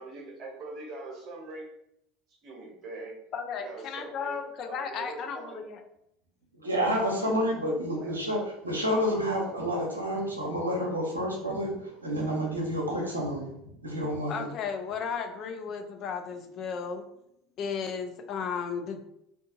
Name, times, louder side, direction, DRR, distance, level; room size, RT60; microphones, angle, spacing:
voice 1, 0.0-1.7 2.3-3.2 3.6-5.6 8.0-8.2, right 2 dB, 45° right, 0 dB, 0.8 m, -42 dB
voice 2, 3.3-5.8 14.3-17.0 17.6-19.0, left 6 dB, 45° left, 5 dB, 0.3 m, -34 dB
voice 3, 6.6-8.4 8.6-14.5, equal, 85° right, -1 dB, 0.5 m, -29 dB
2.6 x 2.3 x 2.5 m, 0.77 s
figure-of-eight pair, 70°, 0 cm